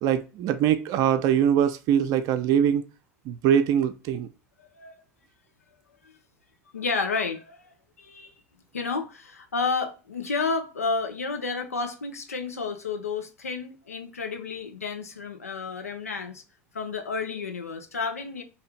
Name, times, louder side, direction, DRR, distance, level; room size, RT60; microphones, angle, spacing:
voice 1, 0.0-2.8 3.3-4.3, right 9 dB, 55° right, 0.4 m, -22 dB
voice 2, 4.6-5.0 6.0-6.2 6.7-8.3 8.7-16.4 16.7-18.4, left 4 dB, 90° left, 0.5 m, -31 dB
2.8 x 2.4 x 3.2 m
hypercardioid pair, 70°, 8 cm